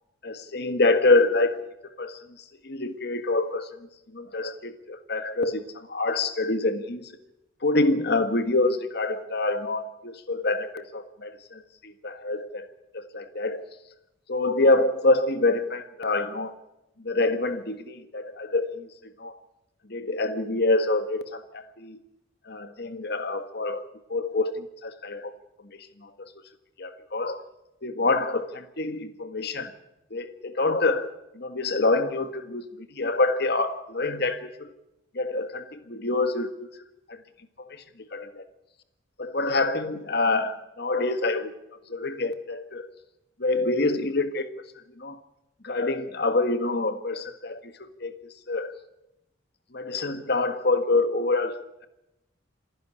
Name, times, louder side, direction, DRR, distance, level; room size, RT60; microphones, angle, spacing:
voice 1, 0.2-1.6 2.0-2.2 2.6-3.7 4.1-7.1 7.6-12.7 12.9-13.6 14.3-16.5 17.0-19.4 19.9-22.0 22.4-23.8 24.1-25.3 25.6-26.3 26.8-27.4 27.8-29.7 30.1-34.7 35.1-36.7 37.1-37.2 37.6-37.8 38.1-38.5 39.2-41.5 41.9-42.9 43.4-44.5 45.0-45.2 45.6-48.7 49.7-51.9, left 2 dB, 55° left, 10 dB, 1.6 m, -26 dB
27.0 x 11.0 x 10.0 m, 0.91 s
head